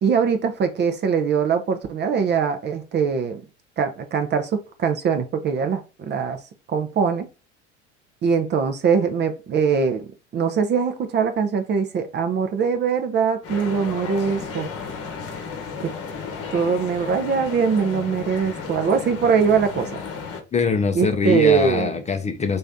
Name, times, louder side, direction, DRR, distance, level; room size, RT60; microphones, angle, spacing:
voice 1, 0.0-3.4 3.8-6.4 6.7-7.3 8.2-14.7 15.8-15.9 16.5-19.9 20.9-21.9, right 6 dB, 30° right, 0.6 m, -22 dB
sound 1, 13.4-20.4, left 5 dB, 40° left, 1.0 m, -33 dB
voice 2, 20.5-22.6, left 5 dB, 20° left, 0.6 m, -22 dB
3.2 x 2.7 x 3.5 m
figure-of-eight pair, 70°, 36 cm